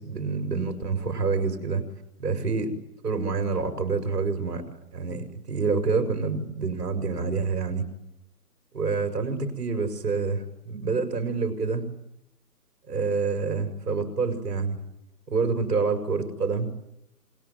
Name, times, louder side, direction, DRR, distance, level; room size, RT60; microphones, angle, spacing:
voice 1, 0.0-1.8 2.2-2.7 3.0-4.6 4.9-7.9 8.7-11.9 12.9-14.8 15.3-16.7, right 4 dB, 70° right, 8 dB, 5.8 m, -27 dB
28.0 x 22.0 x 9.5 m, 0.83 s
hypercardioid pair, 175°, 48 cm